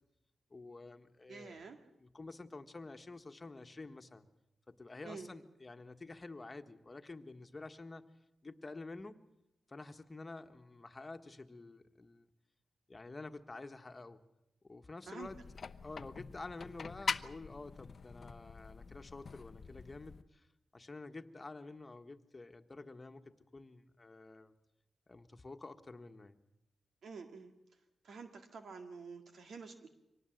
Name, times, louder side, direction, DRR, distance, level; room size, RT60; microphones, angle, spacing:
voice 1, 0.5-1.6 2.0-4.3 4.7-8.0 8.4-9.2 9.7-12.3 12.9-14.2 14.6-15.4 15.8-20.5 20.7-24.6 25.1-26.4, left 3 dB, 30° left, 7 dB, 1.5 m, -49 dB
voice 2, 1.3-1.8 5.0-5.3 15.1-15.3 27.0-27.5 28.0-29.9, right 5 dB, 75° right, 5 dB, 2.0 m, -48 dB
sound 1, 15.2-20.2, left 5 dB, 55° left, 0.8 m, -43 dB
25.0 x 19.0 x 7.9 m, 0.86 s
cardioid pair, 90°, 0 cm